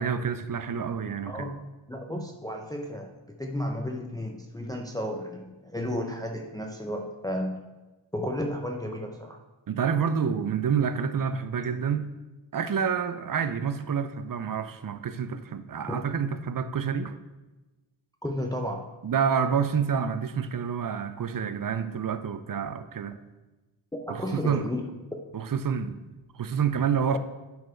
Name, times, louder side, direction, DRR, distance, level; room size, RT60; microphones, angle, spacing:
voice 1, 0.0-1.5 9.7-12.1 12.5-17.2 19.0-23.2 24.1-24.7 25.3-26.0 26.3-27.2, right 7 dB, 45° right, 11 dB, 0.6 m, -28 dB
voice 2, 1.2-1.6 1.9-3.1 3.4-7.6 8.1-9.4 18.2-18.9 24.0-24.9 27.1-27.2, left 1 dB, 10° left, 2 dB, 0.7 m, -33 dB
9.3 x 4.5 x 4.5 m, 1.1 s
cardioid pair, 80°, 50 cm